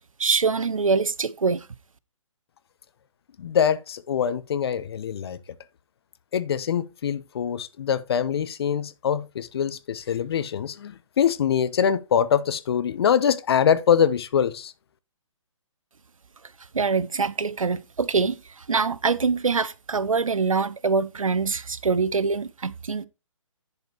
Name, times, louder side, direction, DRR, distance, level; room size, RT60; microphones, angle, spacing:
voice 1, 0.2-1.7 16.7-23.1, right 4 dB, 80° right, 0.8 m, -24 dB
voice 2, 3.4-5.4 6.3-14.7, left 8 dB, 50° left, 1.0 m, -24 dB
11.0 x 4.8 x 4.6 m
figure-of-eight pair, 140°, 17 cm